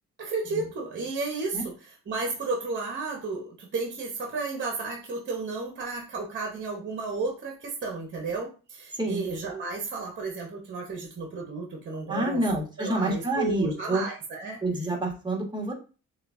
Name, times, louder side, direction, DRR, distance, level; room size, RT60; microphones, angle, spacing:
voice 1, 0.2-1.7 2.1-12.4 12.8-14.6, right 3 dB, 40° right, 0 dB, 1.1 m, -33 dB
voice 2, 8.9-9.2 12.1-14.0 14.6-15.7, right 1 dB, 15° right, 0 dB, 1.5 m, -28 dB
6.4 x 2.4 x 2.6 m, 0.35 s
cardioid pair, 90°, 30 cm